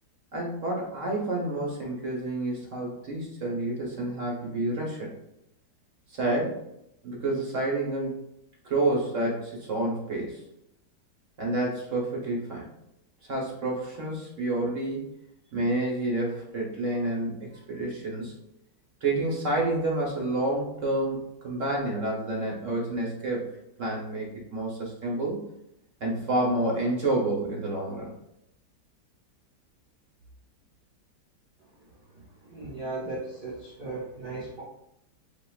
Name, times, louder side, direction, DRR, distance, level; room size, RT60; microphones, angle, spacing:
voice 1, 0.3-5.1 6.1-6.6 7.0-8.1 8.6-10.4 11.4-12.6 13.2-15.1 15.5-18.3 19.0-23.5 23.8-25.4 26.0-28.1, right 2 dB, 50° right, -2 dB, 1.0 m, -29 dB
voice 2, 32.5-34.6, right 2 dB, 30° right, -8 dB, 1.2 m, -36 dB
7.3 x 2.8 x 2.3 m, 0.81 s
omnidirectional pair, 2.1 m